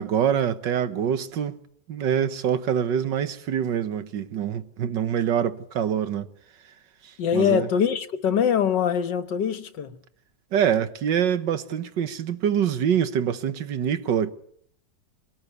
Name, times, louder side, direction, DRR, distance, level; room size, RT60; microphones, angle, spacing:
voice 1, 0.0-1.6 1.9-6.3 7.0-7.7 10.5-14.3, right 8 dB, 75° right, 1.9 m, -25 dB
voice 2, 7.2-10.0, left 8 dB, 70° left, 1.8 m, -23 dB
26.0 x 19.0 x 8.2 m
omnidirectional pair, 2.0 m